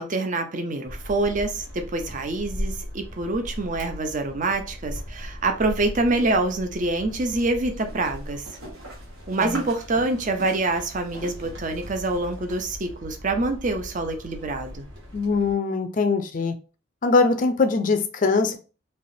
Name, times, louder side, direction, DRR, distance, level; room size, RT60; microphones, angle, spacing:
voice 1, 0.0-8.4 9.3-14.9, right 2 dB, 40° right, 0.5 m, -26 dB
sound 1, 0.8-15.5, equal, 70° right, 1.5 m, -38 dB
sound 2, 7.7-12.7, right 2 dB, 85° right, 1.4 m, -43 dB
voice 2, 15.1-16.5 17.0-18.6, left 4 dB, 40° left, 0.4 m, -22 dB
3.3 x 2.8 x 2.6 m
head